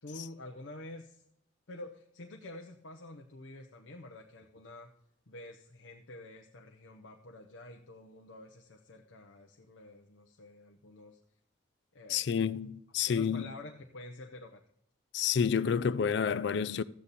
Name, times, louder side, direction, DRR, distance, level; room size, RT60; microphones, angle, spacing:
voice 1, 0.0-1.2 1.7-4.9 5.3-11.2 11.9-12.4 13.0-14.6, left 2 dB, 80° left, 0.8 m, -48 dB
voice 2, 12.1-13.5 15.1-16.8, left 7 dB, 60° left, 0.4 m, -29 dB
13.5 x 8.4 x 4.1 m
head